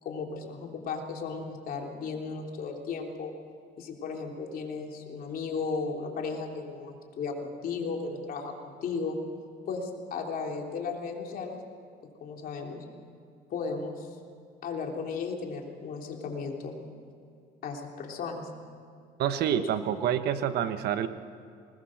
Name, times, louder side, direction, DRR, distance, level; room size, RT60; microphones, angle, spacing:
voice 1, 0.0-3.3 3.8-9.2 9.7-11.6 12.2-12.8 13.5-14.1 14.6-16.8 17.6-18.5, left 4 dB, 60° left, 1 dB, 3.3 m, -35 dB
voice 2, 19.2-21.1, right 9 dB, 75° right, 10 dB, 1.2 m, -27 dB
20.5 x 19.5 x 6.5 m, 2.4 s
cardioid pair, 110°, 17 cm